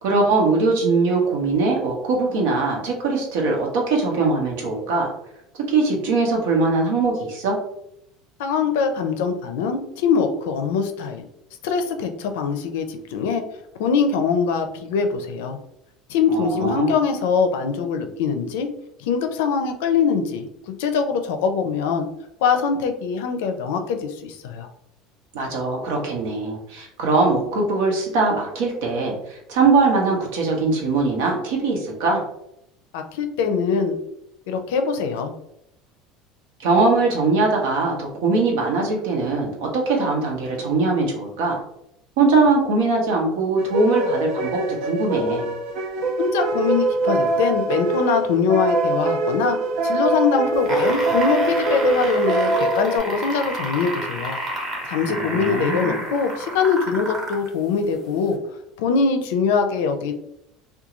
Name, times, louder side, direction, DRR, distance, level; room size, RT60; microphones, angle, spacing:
voice 1, 0.0-5.1 5.5-7.6 16.3-16.9 25.3-32.2 36.6-41.6 42.2-45.5 55.1-56.0, right 3 dB, 85° right, 0 dB, 0.9 m, -21 dB
voice 2, 8.4-11.2 11.6-13.4 13.8-15.6 16.1-18.7 19.0-20.5 20.8-22.1 22.4-24.7 32.9-33.9 34.5-35.3 46.2-49.6 49.8-54.4 54.9-58.4 58.8-60.1, left 5 dB, 90° left, 6 dB, 0.4 m, -22 dB
sound 1, 43.6-53.0, right 2 dB, 60° right, 0.5 m, -23 dB
sound 2, 50.5-57.5 58.3-58.4, right 1 dB, 30° right, 0.8 m, -30 dB
2.4 x 2.2 x 2.9 m, 0.78 s
cardioid pair, 155°, 0 cm